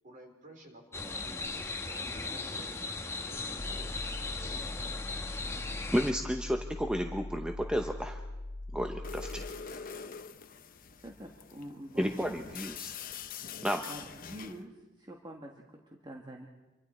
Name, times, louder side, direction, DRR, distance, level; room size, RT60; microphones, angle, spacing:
voice 1, 0.0-2.7 3.0-3.9, right 1 dB, 40° right, 3 dB, 3.6 m, -52 dB
sound 1, 0.9-6.1, left 3 dB, 10° left, 1.2 m, -38 dB
sound 2, 3.6-9.5, left 2 dB, 80° left, 1.6 m, -41 dB
voice 2, 5.9-8.2 8.7-9.8 12.0-12.9 13.6-13.8, equal, 5° right, 5 dB, 0.8 m, -32 dB
sound 3, 9.0-14.6, left 6 dB, 40° left, 0.8 m, -44 dB
voice 3, 11.0-12.5 13.9-16.5, equal, 20° right, 1 dB, 1.5 m, -46 dB
27.5 x 24.0 x 4.3 m, 1.1 s
head